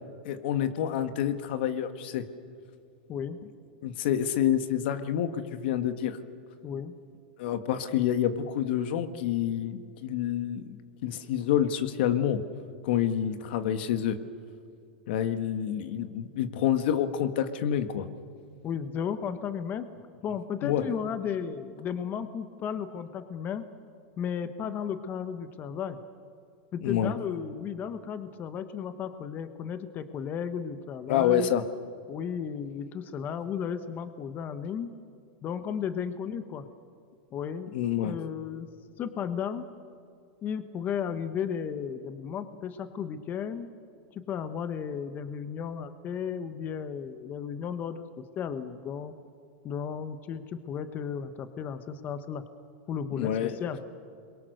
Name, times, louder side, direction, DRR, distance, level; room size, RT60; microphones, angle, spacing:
voice 1, 0.2-2.3 3.8-6.2 7.4-12.4 12.8-14.2 15.1-18.1 20.6-20.8 26.8-27.1 31.1-31.6 37.7-38.1 53.1-53.6, left 10 dB, 65° left, 10 dB, 1.6 m, -28 dB
voice 2, 6.6-6.9 18.6-19.9 20.2-23.7 24.2-26.0 26.7-31.5 32.1-34.9 35.4-36.7 37.3-37.7 38.0-38.7 39.0-39.7 40.4-43.7 44.1-48.0 48.4-49.1 49.6-52.4 52.9-53.8, left 7 dB, 35° left, 10 dB, 1.2 m, -34 dB
28.5 x 23.0 x 6.6 m, 2.4 s
supercardioid pair, 125°, 6 cm